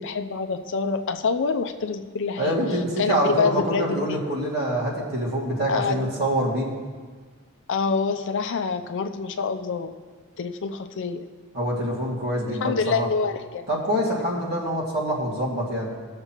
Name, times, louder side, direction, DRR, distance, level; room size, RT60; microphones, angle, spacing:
voice 1, 0.0-2.6 3.0-4.2 5.7-6.0 7.7-9.9 10.4-11.3 12.5-13.7, left 5 dB, 60° left, 7 dB, 0.5 m, -26 dB
voice 2, 2.4-6.7 11.5-13.1 13.7-15.9, equal, 50° right, -3 dB, 2.1 m, -25 dB
18.5 x 6.7 x 3.0 m, 1.5 s
head